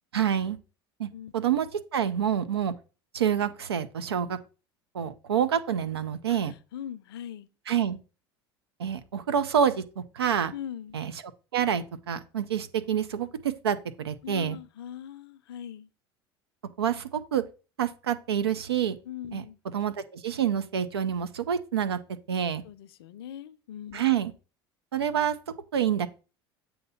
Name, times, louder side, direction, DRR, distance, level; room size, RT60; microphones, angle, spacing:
voice 1, 0.1-0.6 1.0-1.7 1.9-2.7 3.1-4.4 4.9-6.5 7.7-8.0 8.8-10.5 10.9-11.1 11.5-14.6 16.8-17.4 17.8-19.0 19.3-19.4 19.7-22.0 22.3-22.6 23.9-24.3 24.9-25.4 25.7-26.1, right 8 dB, 90° right, 0.5 m, -27 dB
voice 2, 6.7-7.5 10.5-11.0 14.2-15.9 19.0-19.6 22.6-24.0, left 9 dB, 75° left, 0.5 m, -40 dB
7.7 x 2.8 x 5.6 m
hypercardioid pair, 75°, 13 cm